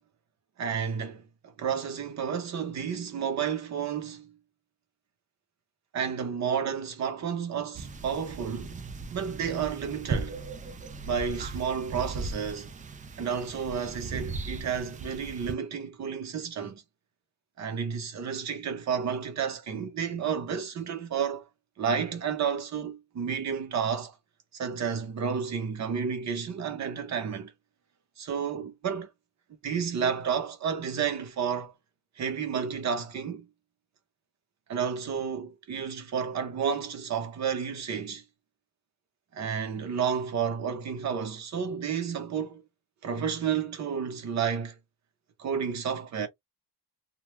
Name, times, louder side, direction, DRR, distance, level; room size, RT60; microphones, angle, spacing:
voice 1, 0.6-4.3 5.9-8.7 9.1-10.4 11.1-12.7 13.2-16.8 17.6-21.4 21.8-24.1 24.5-27.5 28.2-29.1 29.6-31.7 32.2-33.5 34.7-38.2 39.3-42.6 43.0-44.8 45.4-46.3, right 7 dB, 50° right, 0.8 m, -31 dB
sound 1, 7.7-15.5, right 4 dB, 25° right, 0.3 m, -38 dB
2.2 x 2.2 x 3.1 m
cardioid pair, 135°, 37 cm